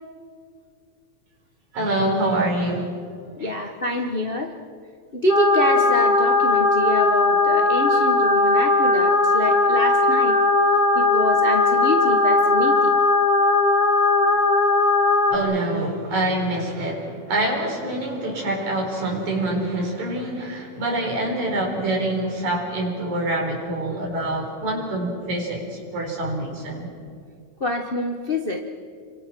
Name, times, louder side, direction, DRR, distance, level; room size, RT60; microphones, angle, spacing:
voice 1, 1.7-2.9 3.4-3.5 15.3-26.9, right 1 dB, 75° right, 0 dB, 5.9 m, -25 dB
voice 2, 3.4-4.5 5.1-10.4 10.9-13.0 27.6-28.6, left 1 dB, 85° left, 3 dB, 0.5 m, -26 dB
sound 1, 5.3-15.4, left 3 dB, 25° left, 1.7 m, -18 dB
29.5 x 24.5 x 6.1 m, 2.2 s
omnidirectional pair, 3.3 m